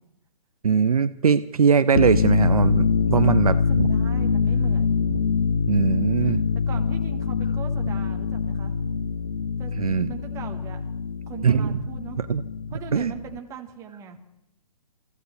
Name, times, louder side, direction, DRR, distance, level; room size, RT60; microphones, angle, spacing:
voice 1, 0.6-3.9 5.7-6.4 9.8-10.1 11.4-11.8 12.2-12.4 12.9-13.1, right 6 dB, 65° right, 12 dB, 0.6 m, -21 dB
sound 1, 1.8-13.4, left 5 dB, 60° left, 0.7 m, -24 dB
voice 2, 3.9-5.0 6.2-8.8 9.6-10.8 11.3-12.2 12.7-14.2, right 9 dB, 15° right, 4 dB, 1.4 m, -40 dB
28.0 x 15.0 x 3.2 m, 0.82 s
figure-of-eight pair, 130°, 20 cm